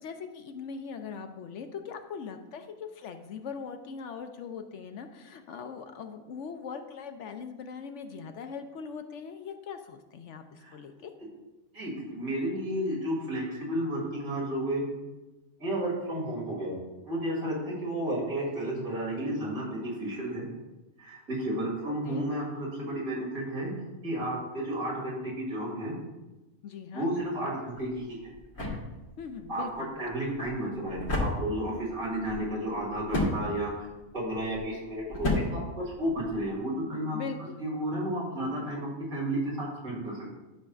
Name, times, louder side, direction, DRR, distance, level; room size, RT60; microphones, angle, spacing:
voice 1, 0.0-11.1 21.9-22.3 26.6-27.1 29.2-30.0 37.1-37.6, left 6 dB, 65° left, 7 dB, 0.9 m, -41 dB
voice 2, 11.7-14.8 15.6-16.7 17.1-20.4 21.0-23.7 24.0-25.9 26.9-28.3 29.5-33.9 34.1-37.2 37.6-40.4, right 1 dB, 85° right, -4 dB, 3.0 m, -32 dB
sound 1, 27.7-36.6, left 1 dB, 85° left, 2.2 m, -35 dB
11.5 x 6.3 x 2.4 m, 1.1 s
omnidirectional pair, 1.4 m